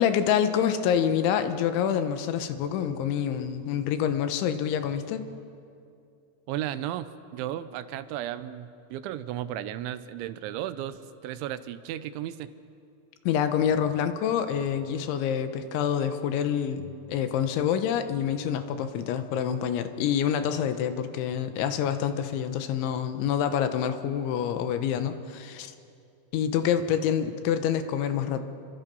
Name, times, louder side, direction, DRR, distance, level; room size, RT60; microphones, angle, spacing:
voice 1, 0.0-5.3 13.3-25.7 26.3-28.4, left 8 dB, 80° left, 9 dB, 3.5 m, -27 dB
voice 2, 6.5-12.5, right 12 dB, 85° right, 13 dB, 3.1 m, -34 dB
29.5 x 24.0 x 5.5 m, 2.5 s
omnidirectional pair, 5.4 m